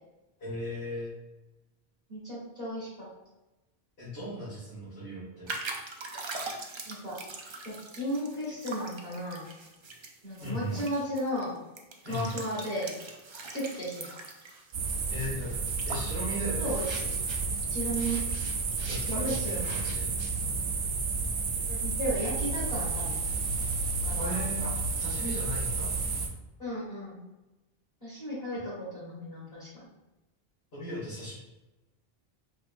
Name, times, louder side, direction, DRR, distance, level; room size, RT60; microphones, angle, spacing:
voice 1, 0.4-1.1 4.0-5.5 10.4-10.8 12.0-12.4 15.1-15.5 15.9-16.7 18.9-20.1 24.2-25.9 30.7-31.3, equal, 85° left, -14 dB, 1.9 m, -37 dB
voice 2, 2.1-3.1 6.8-7.2 7.6-9.5 10.2-11.6 12.1-12.9 13.5-14.1 16.6-17.1 17.7-18.2 19.1-19.7 21.7-23.2 24.0-24.4 26.6-27.2 28.0-29.9, equal, 40° left, -8 dB, 1.6 m, -34 dB
sound 1, 5.5-17.7 17.9-20.5, right 3 dB, 50° right, 0.3 m, -43 dB
sound 2, 14.7-26.3, right 4 dB, 75° right, 0.8 m, -31 dB
4.3 x 2.8 x 2.5 m, 1.0 s
omnidirectional pair, 1.0 m